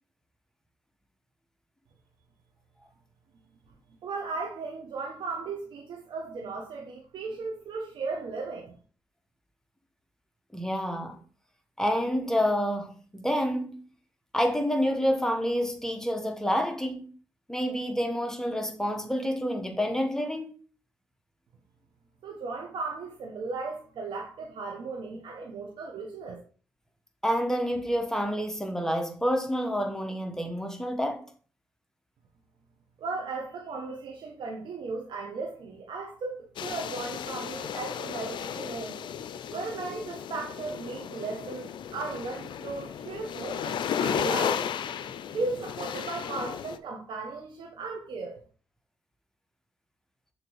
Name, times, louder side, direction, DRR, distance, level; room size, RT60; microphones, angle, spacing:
voice 1, 4.0-8.7 22.2-26.4 33.0-39.0 39.5-44.7 45.3-48.4, right 4 dB, 75° right, 1.1 m, -36 dB
voice 2, 10.5-11.2 11.8-13.8 14.3-17.1 17.5-20.6 27.2-31.3, equal, 5° left, 1.3 m, -28 dB
sound 1, 36.6-46.8, left 8 dB, 75° left, 0.4 m, -34 dB
6.5 x 3.1 x 4.7 m
cardioid pair, 60°, 8 cm